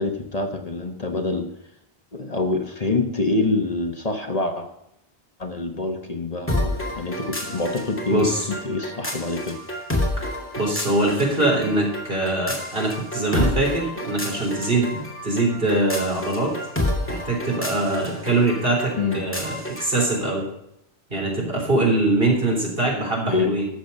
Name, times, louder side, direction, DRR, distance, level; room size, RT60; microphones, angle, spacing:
voice 1, 0.0-1.5 2.1-4.7 5.4-9.6 19.0-19.2 23.3-23.5, left 3 dB, 40° left, 4 dB, 1.1 m, -26 dB
sound 1, 6.5-20.2, left 1 dB, 10° left, 2.1 m, -30 dB
voice 2, 8.1-8.5 10.2-10.3 10.5-16.5 17.1-20.5 21.1-23.7, right 2 dB, 60° right, -1 dB, 3.8 m, -23 dB
13.0 x 7.3 x 5.3 m, 0.82 s
omnidirectional pair, 1.0 m